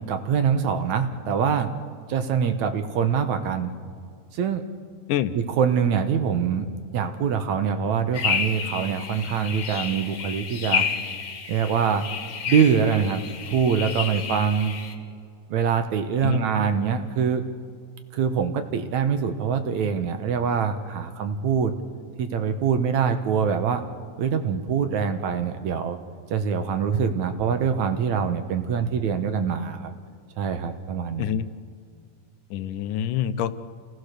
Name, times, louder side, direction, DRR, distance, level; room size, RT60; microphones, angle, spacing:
voice 1, 0.1-1.7 2.1-3.7 4.3-4.6 5.3-10.9 11.5-12.0 12.5-14.8 15.5-17.4 18.1-21.7 22.2-23.8 24.2-26.0 26.3-29.9 30.4-31.4, right 7 dB, 65° right, 8 dB, 2.3 m, -24 dB
sound 1, 8.1-14.9, left 7 dB, 50° left, 2.5 m, -30 dB
voice 2, 32.5-33.5, left 10 dB, 80° left, 11 dB, 2.3 m, -26 dB
28.5 x 18.0 x 6.6 m, 2.3 s
omnidirectional pair, 3.8 m